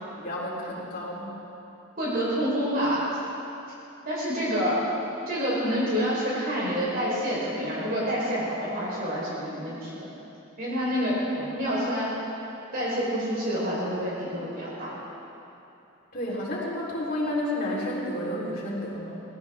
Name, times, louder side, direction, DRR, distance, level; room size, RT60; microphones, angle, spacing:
voice 1, 0.2-1.4 16.1-19.2, left 1 dB, 45° left, -6 dB, 4.0 m, -31 dB
voice 2, 2.0-3.0 4.0-4.8 5.3-10.1 10.6-12.1 12.7-14.9, equal, 45° right, -7 dB, 4.6 m, -28 dB
18.5 x 18.0 x 3.7 m, 2.9 s
head